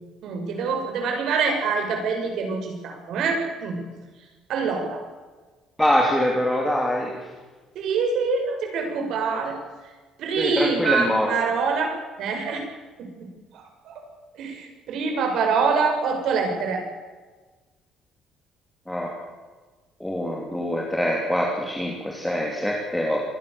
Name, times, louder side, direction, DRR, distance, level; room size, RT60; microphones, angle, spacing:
voice 1, 0.2-3.8 4.5-5.0 7.7-9.6 10.2-12.6 13.9-14.0 14.4-16.8, right 5 dB, 55° right, 4 dB, 6.8 m, -25 dB
voice 2, 5.8-7.1 10.4-11.3 18.9-19.1 20.0-23.2, equal, 5° left, -1 dB, 3.0 m, -24 dB
26.5 x 20.5 x 7.1 m, 1.3 s
cardioid pair, 175°, 0 cm